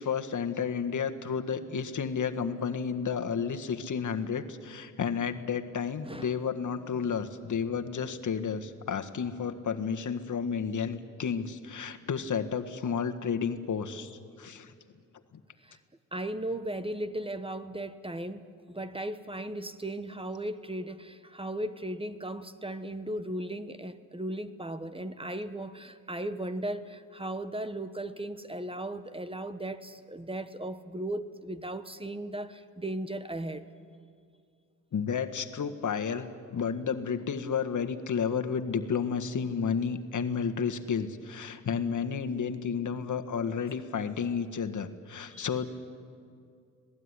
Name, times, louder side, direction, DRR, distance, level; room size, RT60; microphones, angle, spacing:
voice 1, 0.0-14.7 34.9-45.7, left 6 dB, 60° left, 6 dB, 1.7 m, -31 dB
voice 2, 6.0-6.4 15.6-15.7 16.1-18.4 18.7-33.6 45.3-45.5, right 1 dB, 15° right, 12 dB, 1.2 m, -36 dB
26.0 x 18.5 x 9.8 m, 2.3 s
cardioid pair, 70°, 34 cm